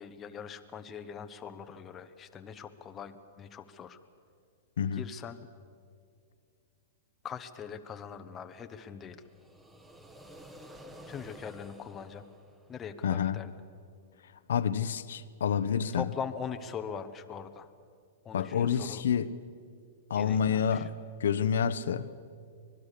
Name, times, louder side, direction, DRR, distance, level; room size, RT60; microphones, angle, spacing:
voice 1, 0.0-4.0 4.9-5.4 7.2-9.2 11.1-12.2 12.7-13.6 15.9-17.7 18.2-19.0 20.1-20.9, left 7 dB, 20° left, 1.0 m, -41 dB
sound 1, 9.2-13.2, equal, 10° right, 1.4 m, -51 dB
voice 2, 13.0-13.4 14.5-16.0 18.3-19.3 20.1-20.9 21.2-22.1, left 8 dB, 85° left, 1.0 m, -28 dB
25.0 x 20.0 x 6.8 m
hypercardioid pair, 150°, 0 cm